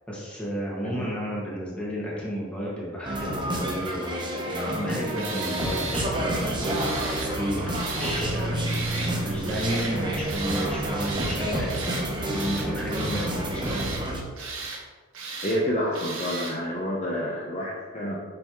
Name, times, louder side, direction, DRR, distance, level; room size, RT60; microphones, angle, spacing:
voice 1, 0.1-11.9 12.3-14.5, equal, 5° left, -6 dB, 1.8 m, -33 dB
sound 1, 3.0-14.2, right 1 dB, 20° right, 0.9 m, -29 dB
Tools, 5.2-6.1 6.6-7.3 7.7-8.3 8.6-9.1 9.5-9.9 10.2-10.7 11.0-11.4 11.7-12.1 12.3-13.3 13.6-14.0 14.4-14.8 15.1-15.6 15.9-16.6, right 4 dB, 70° right, 1.3 m, -35 dB
voice 2, 15.4-18.2, equal, 35° left, -4 dB, 0.8 m, -29 dB
7.8 x 5.7 x 3.1 m, 1.5 s
head